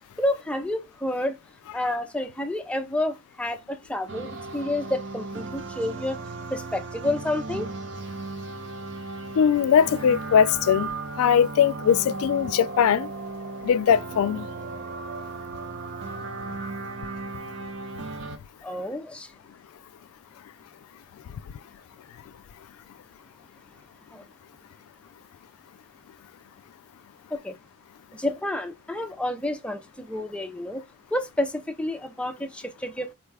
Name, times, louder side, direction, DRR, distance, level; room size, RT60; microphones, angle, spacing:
voice 1, 0.2-1.4 1.7-6.2 6.5-7.7 18.6-19.3 24.1-24.2 27.3-27.5 28.1-30.8 31.1-33.1, left 1 dB, 5° left, 0.4 m, -29 dB
sound 1, 4.1-18.4, right 3 dB, 55° right, 0.6 m, -36 dB
voice 2, 9.4-10.9 11.2-13.1 13.6-14.5, left 8 dB, 90° left, 0.3 m, -20 dB
4.3 x 2.3 x 3.2 m
head